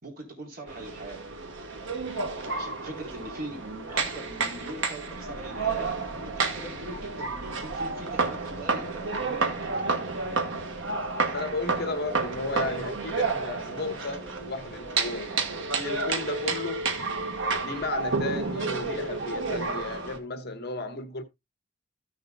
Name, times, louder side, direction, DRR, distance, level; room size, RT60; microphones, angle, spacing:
voice 1, 0.0-1.2 2.4-5.9 6.2-9.7, right 1 dB, 50° right, 3.9 m, -41 dB
sound 1, 0.7-20.2, right 4 dB, 70° right, 1.4 m, -31 dB
voice 2, 11.3-16.8 17.6-21.2, left 3 dB, 55° left, 1.3 m, -34 dB
15.0 x 6.7 x 2.3 m
head